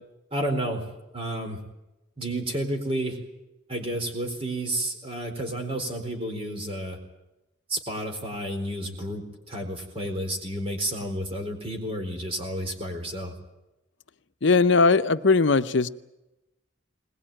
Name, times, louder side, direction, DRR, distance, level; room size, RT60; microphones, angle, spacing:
voice 1, 0.3-0.8 1.1-1.6 2.2-3.2 3.7-7.0 7.7-13.3, right 1 dB, 30° right, 4.2 m, -31 dB
voice 2, 14.4-15.9, left 4 dB, 65° left, 0.8 m, -19 dB
21.5 x 21.0 x 9.0 m
head